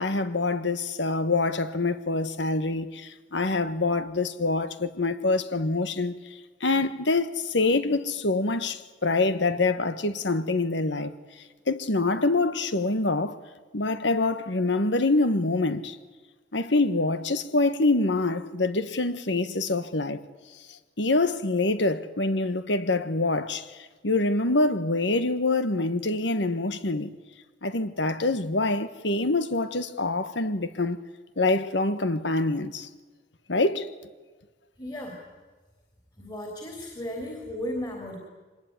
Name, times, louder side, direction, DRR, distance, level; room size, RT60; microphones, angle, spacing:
voice 1, 0.0-6.2 6.6-11.1 11.7-13.4 13.7-16.0 16.5-20.2 20.7-27.2 27.6-31.0 31.4-32.9 33.5-33.9, left 2 dB, 80° left, 1.4 m, -25 dB
voice 2, 34.8-35.2 36.2-38.1, left 1 dB, 25° left, 3.6 m, -35 dB
24.5 x 20.5 x 9.6 m
head